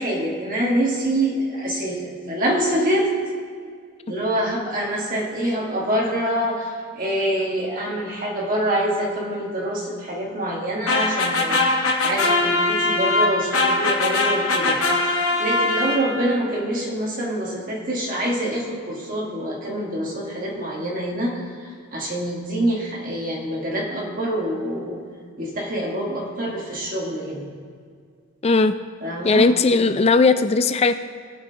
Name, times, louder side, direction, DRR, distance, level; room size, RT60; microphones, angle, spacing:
voice 1, 0.0-3.2 4.1-11.6 12.0-14.8 15.0-15.1 15.4-25.0 25.4-27.5 29.0-29.5, right 1 dB, 40° right, -2 dB, 1.5 m, -25 dB
sound 1, 10.9-16.4, left 2 dB, 70° left, 1.0 m, -21 dB
voice 2, 28.4-28.7 29.2-31.0, left 3 dB, 30° left, 11 dB, 0.3 m, -17 dB
18.5 x 6.4 x 2.8 m, 2.1 s
head